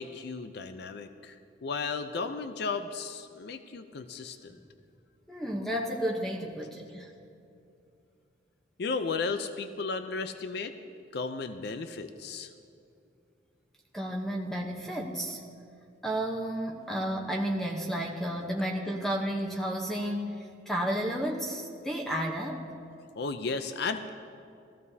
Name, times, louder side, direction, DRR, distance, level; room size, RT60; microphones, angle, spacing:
voice 1, 0.0-4.6 8.8-10.8 11.1-12.5 23.2-24.1, left 4 dB, 60° left, 9 dB, 0.5 m, -34 dB
voice 2, 5.3-7.1 13.9-15.4 16.0-22.6, equal, ahead, 0 dB, 0.8 m, -32 dB
18.0 x 14.5 x 2.7 m, 2.5 s
head